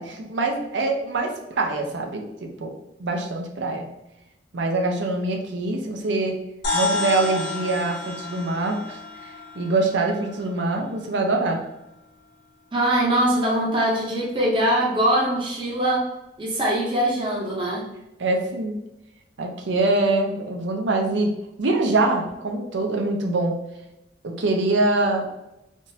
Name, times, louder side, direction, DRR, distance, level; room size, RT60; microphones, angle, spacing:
voice 1, 0.0-2.7 3.0-3.9 4.5-6.4 6.7-11.6 18.2-18.7 19.4-21.3 21.6-23.5 24.2-25.3, right 2 dB, 70° right, 3 dB, 0.6 m, -24 dB
sound 1, 6.6-11.2, left 3 dB, 65° left, 1.1 m, -30 dB
voice 2, 12.7-16.0 16.4-17.9, right 1 dB, 25° right, -4 dB, 0.7 m, -22 dB
3.6 x 2.5 x 2.7 m, 0.92 s
head